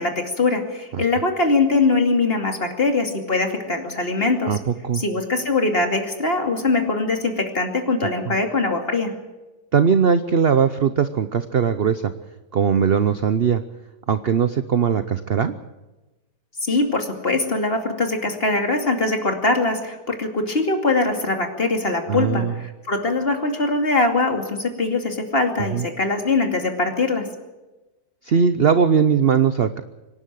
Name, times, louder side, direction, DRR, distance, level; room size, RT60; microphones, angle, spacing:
voice 1, 0.0-4.6 4.9-9.1 16.6-27.3, left 3 dB, 35° left, 4 dB, 2.7 m, -22 dB
voice 2, 4.5-5.0 8.3-8.4 9.7-12.0 12.5-13.6 14.1-15.5 22.1-22.5 25.7-25.8 28.2-29.8, right 7 dB, 50° right, 11 dB, 0.7 m, -19 dB
25.5 x 11.5 x 9.3 m, 1.1 s
omnidirectional pair, 1.8 m